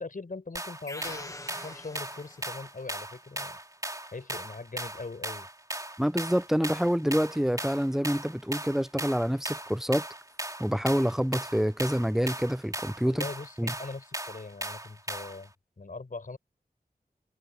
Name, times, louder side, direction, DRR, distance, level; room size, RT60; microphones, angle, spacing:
voice 1, 0.0-3.6 4.1-5.5 13.0-16.4, left 3 dB, 60° left, 4.8 m, -41 dB
sound 1, 0.5-15.5, right 1 dB, 20° right, 2.8 m, -38 dB
sound 2, 0.9-2.8, left 1 dB, 20° left, 1.1 m, -43 dB
voice 2, 6.0-10.0 10.6-13.3 13.6-13.7, equal, ahead, 0.6 m, -27 dB
wide cardioid pair, 65°, 16 cm